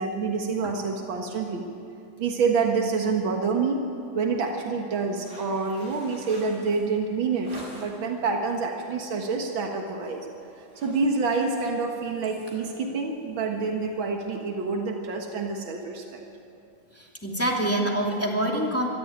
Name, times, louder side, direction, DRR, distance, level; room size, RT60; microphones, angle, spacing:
voice 1, 0.0-1.6 2.2-3.8 4.1-10.2 10.8-16.2, right 4 dB, 90° right, 2 dB, 2.3 m, -27 dB
sound 1, 5.1-8.1 8.6-8.9 9.3-9.5 9.8-10.2 10.5-14.4, right 1 dB, 35° right, 4.4 m, -48 dB
voice 2, 16.9-18.9, right 1 dB, 5° left, -1 dB, 2.8 m, -26 dB
24.0 x 14.5 x 9.0 m, 2.6 s
omnidirectional pair, 2.1 m